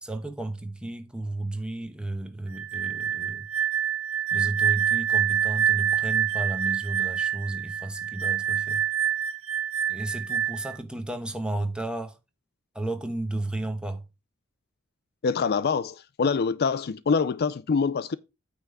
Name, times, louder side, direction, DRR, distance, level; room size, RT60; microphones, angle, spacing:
voice 1, 0.0-3.5 4.3-8.8 9.9-12.2 12.7-14.0, right 2 dB, 5° right, 1.0 m, -33 dB
sound 1, 2.5-10.8, right 9 dB, 80° right, 1.2 m, -26 dB
voice 2, 15.2-18.2, left 5 dB, 50° left, 0.4 m, -25 dB
9.0 x 3.6 x 6.5 m
head